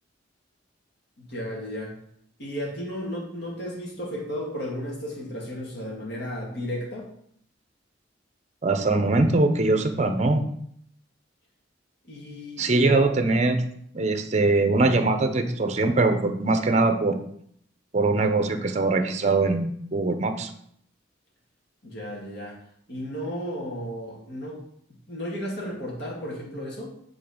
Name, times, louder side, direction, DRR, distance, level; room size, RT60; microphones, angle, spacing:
voice 1, 1.2-1.9 2.4-7.1 12.1-13.1 21.8-22.6 22.9-24.6 25.1-26.9, equal, 60° left, -3 dB, 2.1 m, -34 dB
voice 2, 8.6-10.5 12.6-13.7 13.9-17.2 17.9-20.5, right 2 dB, 35° right, 8 dB, 0.7 m, -22 dB
8.3 x 3.8 x 5.0 m, 0.68 s
head